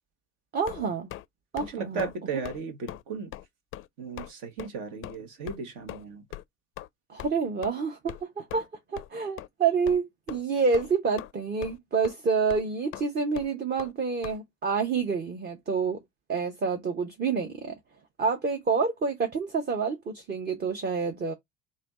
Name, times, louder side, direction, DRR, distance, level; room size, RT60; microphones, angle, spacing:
voice 1, 0.5-1.1 1.5-2.1 7.1-16.0 16.3-17.8 18.2-21.3, right 5 dB, 25° right, 0.9 m, -28 dB
sound 1, 0.6-1.2 1.6-1.7 2.0-2.2 2.4-2.6 2.9-3.0 3.3-3.5 3.7-3.9 4.2-4.3 4.6-4.7 5.0-5.2 5.5-5.6 5.9-6.0 6.3-6.4 6.8-6.9 7.2-7.3 7.6-7.7 8.1-8.2 8.5-8.7 9.0-9.1 9.4-9.5 9.9-10.0 10.3-10.4 10.7-11.3 11.6-11.8 12.0-12.1 12.5-12.6 12.9-13.0 13.3-13.5 13.8-13.9 14.2-14.4, left 14 dB, 35° left, 0.4 m, -40 dB
voice 2, 1.6-3.3 4.0-6.2, right 4 dB, 60° right, 1.4 m, -36 dB
3.2 x 2.7 x 4.0 m
figure-of-eight pair, 65°, 36 cm